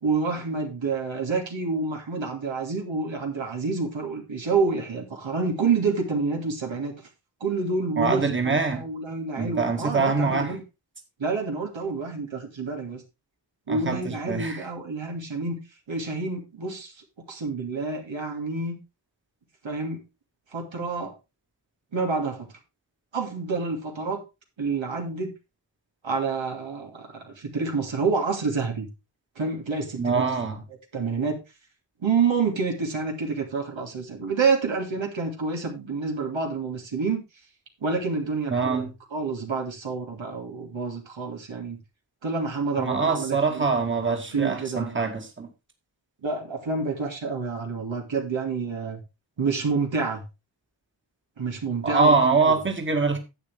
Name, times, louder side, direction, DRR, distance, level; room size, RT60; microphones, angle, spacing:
voice 1, 0.0-6.9 7.4-10.6 11.2-13.0 13.7-15.6 15.9-16.9 17.3-18.8 19.6-20.0 20.5-21.1 21.9-22.5 23.1-24.2 24.6-25.3 26.0-28.9 29.4-30.2 30.9-31.4 32.0-37.2 37.8-41.8 42.2-43.8 44.0-45.1 46.2-49.0 49.4-50.2 51.4-52.2 52.4-52.6, right 4 dB, 80° right, 2 dB, 2.7 m, -28 dB
voice 2, 8.0-8.8 9.4-10.5 13.7-14.6 30.0-30.6 38.5-38.9 42.8-45.5 51.8-53.2, right 4 dB, 25° right, 3 dB, 1.9 m, -24 dB
11.0 x 8.2 x 3.5 m, 0.26 s
wide cardioid pair, 90°, 45 cm